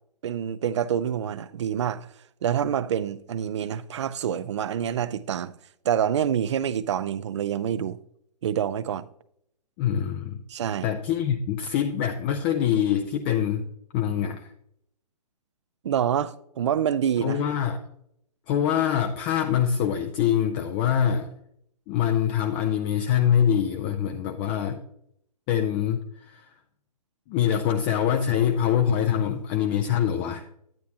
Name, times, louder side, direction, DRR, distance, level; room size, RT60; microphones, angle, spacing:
voice 1, 0.2-2.1 2.4-5.5 5.8-8.0 8.4-9.1 10.5-10.9 15.8-17.4, right 9 dB, 45° right, 0.5 m, -27 dB
voice 2, 9.8-10.4 10.8-13.7 13.9-14.5 17.2-17.8 18.5-21.3 21.9-24.8 25.5-26.5 27.3-30.5, left 9 dB, 15° left, 0.3 m, -24 dB
10.5 x 9.2 x 2.8 m
figure-of-eight pair, 125°, 21 cm